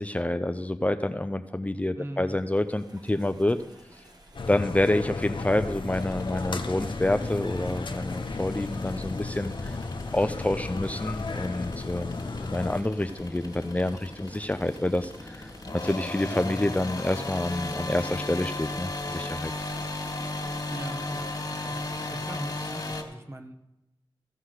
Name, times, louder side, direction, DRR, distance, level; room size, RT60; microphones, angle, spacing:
voice 1, 0.0-3.6 4.5-9.8 10.1-15.5 15.8-19.5, left 1 dB, 15° left, 8 dB, 0.5 m, -28 dB
voice 2, 1.9-2.4 20.7-23.5, right 1 dB, 30° right, 6 dB, 1.2 m, -41 dB
sound 1, 2.4-20.8, right 1 dB, 50° right, 1.6 m, -53 dB
sound 2, 4.3-12.8, left 3 dB, 70° left, 0.8 m, -34 dB
sound 3, 5.9-23.0, left 2 dB, 50° left, 2.1 m, -36 dB
15.0 x 5.8 x 6.5 m, 0.91 s
wide cardioid pair, 70°, 9 cm